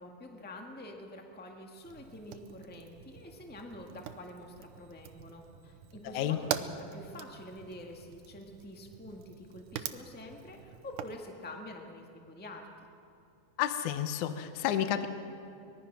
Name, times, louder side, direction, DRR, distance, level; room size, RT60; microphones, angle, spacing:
voice 1, 0.0-12.7, left 1 dB, 15° left, 2 dB, 0.3 m, -47 dB
Fire, 1.8-11.2, right 11 dB, 75° right, 2.3 m, -44 dB
voice 2, 13.6-15.1, left 10 dB, 70° left, 9 dB, 2.1 m, -30 dB
24.0 x 21.0 x 6.2 m, 2.8 s
omnidirectional pair, 4.0 m